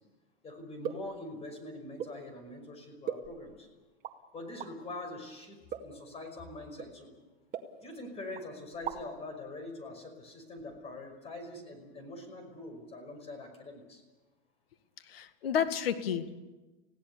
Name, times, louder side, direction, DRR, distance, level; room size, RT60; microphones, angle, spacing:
voice 1, 0.4-3.7 4.3-5.6 5.8-7.1 7.8-14.0, left 2 dB, 20° left, 5 dB, 5.6 m, -44 dB
sound 1, 0.8-1.2 2.0-2.2 3.0-3.6 4.0-4.2 4.6-4.7 5.7-6.0 6.8-6.9 7.5-8.1 8.3-8.4 8.7-9.2, right 8 dB, 30° right, 2.2 m, -39 dB
voice 2, 15.0-16.3, left 8 dB, 80° left, 9 dB, 2.1 m, -31 dB
29.5 x 17.0 x 7.0 m, 1.2 s
hypercardioid pair, 135°, 29 cm